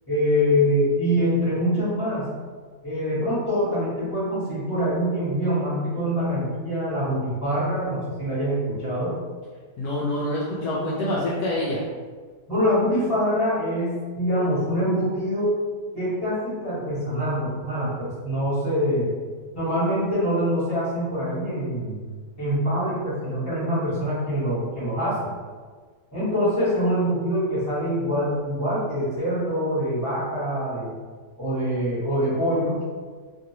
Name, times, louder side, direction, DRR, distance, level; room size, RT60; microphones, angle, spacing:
voice 1, 0.1-2.3 2.8-9.1 12.5-15.5 15.9-19.1 19.5-22.0 22.4-25.2 26.1-30.9 31.4-32.8, equal, 10° left, -13 dB, 1.2 m, -24 dB
voice 2, 9.8-11.8, left 1 dB, 75° left, -6 dB, 1.0 m, -26 dB
3.0 x 2.6 x 2.8 m, 1.5 s
omnidirectional pair, 1.8 m